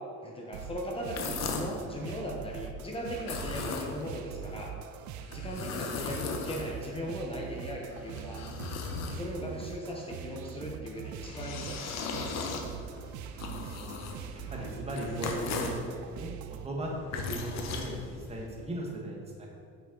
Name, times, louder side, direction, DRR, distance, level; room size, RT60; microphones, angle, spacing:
voice 1, 0.2-4.7 5.3-8.4 9.1-12.3 14.5-14.7, equal, 20° left, -2 dB, 1.0 m, -38 dB
sound 1, 0.5-16.7, right 8 dB, 70° right, 0.5 m, -43 dB
sound 2, 1.0-1.8 3.1-4.2 5.2-7.0 7.7-9.6 11.0-15.9 16.8-18.5, left 4 dB, 60° left, 1.0 m, -38 dB
voice 2, 13.3-14.0 14.5-19.5, right 1 dB, 20° right, -2 dB, 1.6 m, -38 dB
9.4 x 5.8 x 3.9 m, 2.3 s
cardioid pair, 135°, 30 cm